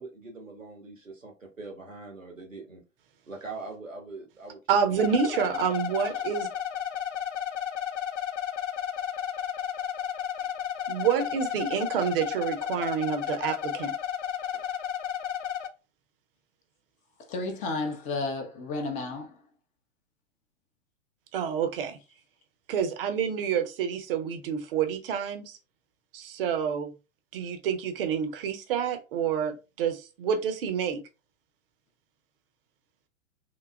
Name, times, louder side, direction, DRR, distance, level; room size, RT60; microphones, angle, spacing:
voice 1, 0.0-2.8 3.3-4.6 4.8-5.6, right 3 dB, 90° right, 1.3 m, -42 dB
voice 2, 4.7-6.5 10.9-13.9 21.3-22.0 22.7-25.6 26.1-26.9 27.3-31.0, right 7 dB, 45° right, 0.8 m, -28 dB
sound 1, 5.0-15.7, left 9 dB, 65° left, 0.6 m, -33 dB
voice 3, 17.3-19.3, left 3 dB, 20° left, 0.6 m, -32 dB
3.9 x 2.7 x 2.3 m
figure-of-eight pair, 105°, 38 cm